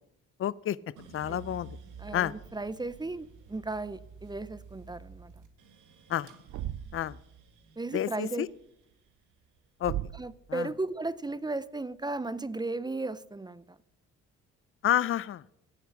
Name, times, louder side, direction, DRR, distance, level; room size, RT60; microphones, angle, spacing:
voice 1, 0.4-0.8 1.1-1.7 2.1-2.3 6.1-6.3 6.9-7.2 7.9-8.5 9.8-9.9 10.5-10.7 14.8-15.4, left 11 dB, 45° left, 20 dB, 0.5 m, -29 dB
sound 1, 1.0-11.2 11.6-12.4, right 4 dB, 90° right, 1.8 m, -51 dB
voice 2, 2.0-5.3 7.8-8.5 10.1-13.8, right 2 dB, 15° right, 16 dB, 0.6 m, -35 dB
Thump thud, 6.5-7.1 9.8-10.4, right 12 dB, 70° right, 0.6 m, -36 dB
17.0 x 7.3 x 5.9 m, 0.80 s
cardioid pair, 90°, 30 cm